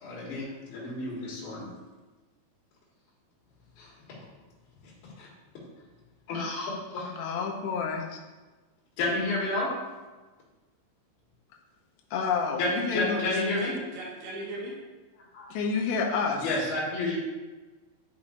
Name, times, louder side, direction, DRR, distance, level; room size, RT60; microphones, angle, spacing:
voice 1, 0.0-1.7 3.8-3.9 5.2-5.3 6.3-7.1 9.0-9.7 12.6-13.7 15.3-15.5 16.3-17.2, left 2 dB, 65° left, 3.3 m, -30 dB
voice 2, 7.1-8.2 12.1-13.4 15.5-16.4, left 5 dB, 80° left, 2.8 m, -29 dB
voice 3, 13.6-14.8, right 1 dB, 75° right, 3.1 m, -38 dB
10.5 x 5.5 x 2.6 m
omnidirectional pair, 5.2 m